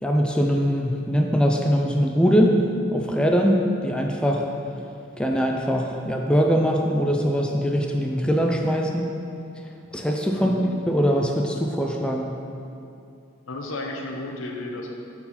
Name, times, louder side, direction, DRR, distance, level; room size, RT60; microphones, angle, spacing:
voice 1, 0.0-2.6 2.9-4.5 5.2-9.1 9.9-10.5 10.9-12.4, equal, 5° left, 1 dB, 0.4 m, -22 dB
voice 2, 10.3-10.7 13.5-14.9, left 2 dB, 85° left, 1 dB, 0.9 m, -33 dB
9.8 x 4.5 x 4.2 m, 2.6 s
head